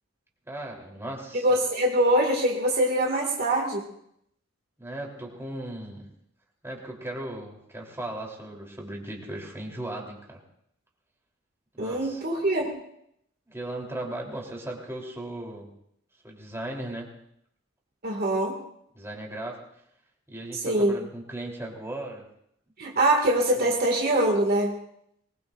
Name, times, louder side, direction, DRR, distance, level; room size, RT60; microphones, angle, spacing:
voice 1, 0.5-1.5 4.8-6.1 6.6-10.4 11.8-12.2 13.5-15.7 16.2-17.1 18.9-19.6 20.3-22.2 23.6-23.7, right 1 dB, 15° right, -2 dB, 3.6 m, -37 dB
voice 2, 1.4-3.8 11.8-12.8 18.0-18.6 20.6-21.0 22.8-24.8, right 1 dB, 50° right, 0 dB, 2.3 m, -23 dB
23.0 x 21.5 x 2.6 m, 0.74 s
head